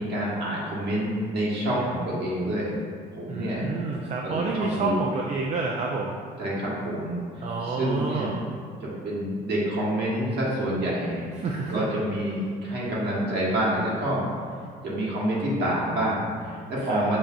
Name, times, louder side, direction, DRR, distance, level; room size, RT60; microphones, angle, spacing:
voice 1, 0.0-2.8 3.1-3.6 4.2-4.9 6.4-8.3 8.8-11.3 11.7-14.2 14.8-17.2, right 1 dB, 60° right, -6 dB, 1.3 m, -27 dB
voice 2, 3.3-6.2 7.4-8.3 11.4-11.8 16.9-17.2, right 4 dB, 35° right, 0 dB, 0.4 m, -29 dB
5.4 x 2.4 x 2.3 m, 2.2 s
supercardioid pair, 70°, 19 cm